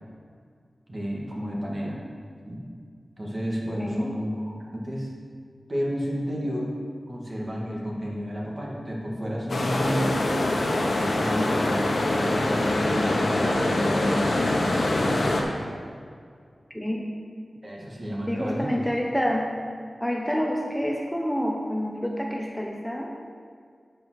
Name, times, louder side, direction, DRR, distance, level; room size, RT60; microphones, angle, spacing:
voice 1, 0.9-2.0 2.5-2.6 3.2-4.3 4.7-5.1 5.7-6.7 7.1-10.4 11.1-14.3 17.6-18.7, equal, 40° right, -3 dB, 2.1 m, -31 dB
voice 2, 3.8-4.2 16.7-17.1 18.3-19.5 20.0-23.2, equal, 5° left, -1 dB, 0.9 m, -28 dB
sound 1, 9.5-15.4, left 1 dB, 75° left, 1.2 m, -24 dB
8.9 x 5.3 x 6.3 m, 2.1 s
wide cardioid pair, 60°, 0 cm